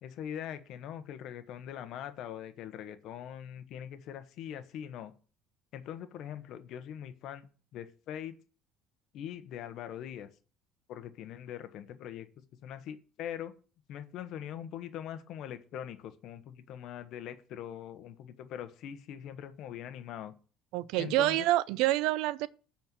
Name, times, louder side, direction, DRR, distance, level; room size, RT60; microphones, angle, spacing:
voice 1, 0.0-5.1 5.7-7.5 7.7-8.4 9.1-10.3 10.9-12.3 12.6-13.5 13.9-20.3 21.0-21.5, left 10 dB, 65° left, 1.1 m, -42 dB
voice 2, 20.7-22.5, right 16 dB, 80° right, 0.5 m, -27 dB
9.6 x 4.4 x 7.4 m
cardioid pair, 120°, 0 cm